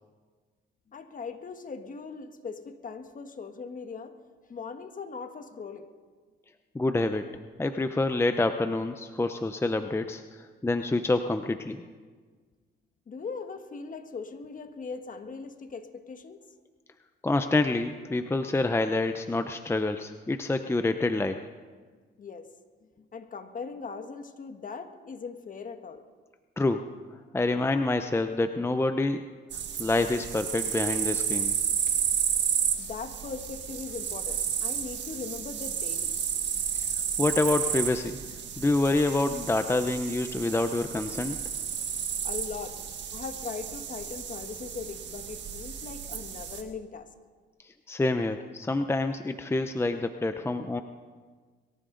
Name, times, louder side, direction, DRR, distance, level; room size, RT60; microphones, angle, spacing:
voice 1, 0.9-4.2 4.5-5.9 13.1-16.4 22.2-22.5 23.0-26.0 27.6-27.7 32.8-36.1 42.2-42.8 43.1-47.1, left 5 dB, 40° left, 7 dB, 1.5 m, -40 dB
voice 2, 6.7-7.2 7.6-11.8 17.2-21.4 26.6-26.8 27.3-29.2 29.8-31.5 37.2-38.2 38.6-41.4 47.9-50.8, left 2 dB, 10° left, 8 dB, 0.7 m, -27 dB
sound 1, 29.5-46.6, right 8 dB, 65° right, 1.7 m, -32 dB
23.0 x 14.0 x 3.9 m, 1.5 s
cardioid pair, 90°, 20 cm